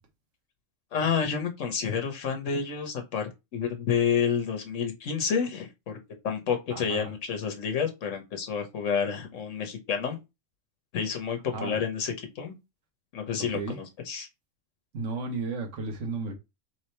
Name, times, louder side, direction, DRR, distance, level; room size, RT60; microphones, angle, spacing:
voice 1, 0.9-6.0 6.2-10.2 10.9-12.6 13.1-14.3, left 6 dB, 85° left, 1.3 m, -29 dB
voice 2, 6.7-7.1 11.5-11.7 13.4-13.8 14.9-16.3, right 3 dB, 75° right, 1.4 m, -33 dB
3.6 x 3.3 x 4.3 m
omnidirectional pair, 1.3 m